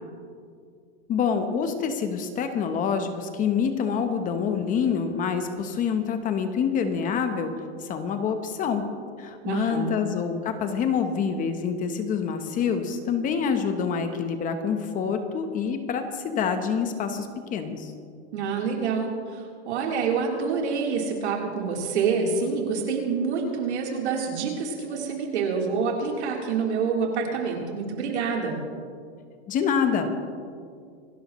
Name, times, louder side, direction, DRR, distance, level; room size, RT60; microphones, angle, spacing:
voice 1, 1.1-7.5 7.8-8.9 9.2-17.9 29.5-30.1, left 6 dB, 25° left, 7 dB, 1.0 m, -26 dB
voice 2, 9.4-10.0 18.3-28.5, right 5 dB, 75° right, -1 dB, 3.8 m, -27 dB
27.0 x 12.0 x 3.2 m, 2.2 s
supercardioid pair, 145°, 34 cm